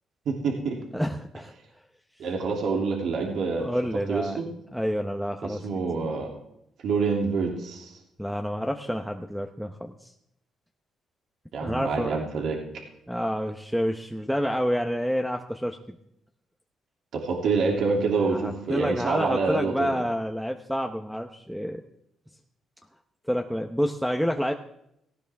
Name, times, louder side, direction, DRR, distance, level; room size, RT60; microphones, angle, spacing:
voice 1, 0.3-0.8 2.2-3.7 4.1-4.4 5.6-6.3 6.8-8.0 11.5-12.6 17.1-19.9, right 4 dB, 70° right, 0 dB, 2.8 m, -26 dB
voice 2, 0.9-1.5 3.6-4.4 4.7-5.7 8.2-10.1 11.6-12.2 13.1-15.8 18.3-21.8 23.3-24.5, equal, ahead, 4 dB, 0.9 m, -28 dB
17.0 x 16.0 x 3.5 m, 0.79 s
cardioid pair, 90°, 0 cm